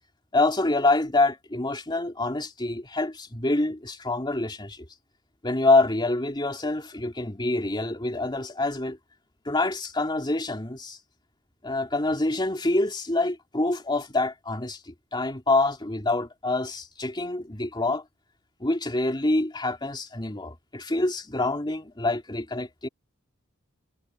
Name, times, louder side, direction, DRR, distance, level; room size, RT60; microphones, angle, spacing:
voice 1, 0.3-4.8 5.4-9.0 9.4-11.0 11.6-18.0 18.6-22.9, left 2 dB, 25° left, 2.9 m, -26 dB
head